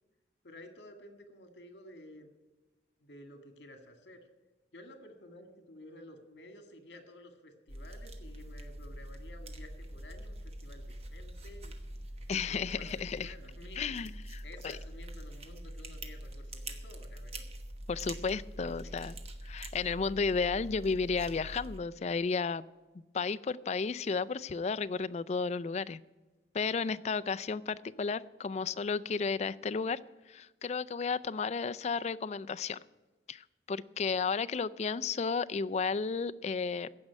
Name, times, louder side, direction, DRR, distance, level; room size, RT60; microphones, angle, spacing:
voice 1, 0.4-2.3 3.0-4.2 4.7-11.8 12.3-13.9 14.4-17.5 18.6-19.0, left 1 dB, 80° left, 7 dB, 1.8 m, -52 dB
sound 1, 7.7-21.8, right 1 dB, 35° right, 1.2 m, -44 dB
voice 2, 12.3-13.3 13.8-14.8 17.9-19.1 19.4-22.6 23.1-26.0 26.5-30.0 30.3-32.8 33.3-36.9, left 5 dB, 40° left, 13 dB, 0.3 m, -33 dB
15.0 x 5.3 x 9.8 m, 1.2 s
head